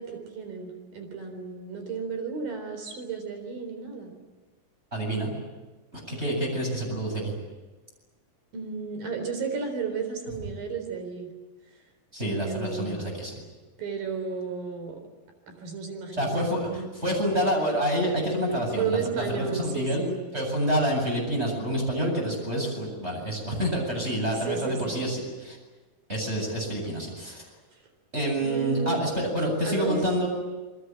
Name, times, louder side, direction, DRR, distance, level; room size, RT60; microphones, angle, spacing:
voice 1, 0.0-4.1 8.5-11.3 12.2-13.1 13.8-15.0 15.5-16.9 18.8-20.2 24.5-25.0 28.4-29.0 29.6-30.3, right 5 dB, 70° right, 6 dB, 5.7 m, -33 dB
voice 2, 4.9-5.3 5.9-7.3 12.1-13.4 16.1-20.0 20.3-25.6 26.1-27.4 28.1-30.3, equal, 15° right, 1 dB, 8.0 m, -28 dB
28.5 x 22.0 x 9.0 m, 1.2 s
omnidirectional pair, 4.2 m